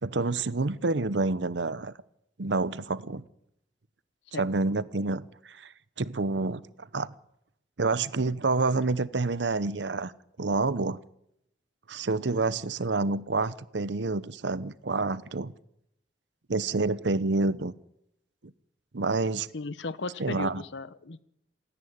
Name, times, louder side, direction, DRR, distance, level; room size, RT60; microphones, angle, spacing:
voice 1, 0.0-1.9 2.4-3.2 4.4-5.7 6.0-7.1 7.8-10.1 10.4-11.0 11.9-15.5 16.5-17.7 18.4-18.5 18.9-19.5 20.2-20.6, right 3 dB, 85° right, 0.9 m, -28 dB
voice 2, 19.5-21.2, left 3 dB, 90° left, 0.9 m, -36 dB
27.5 x 10.5 x 9.6 m
head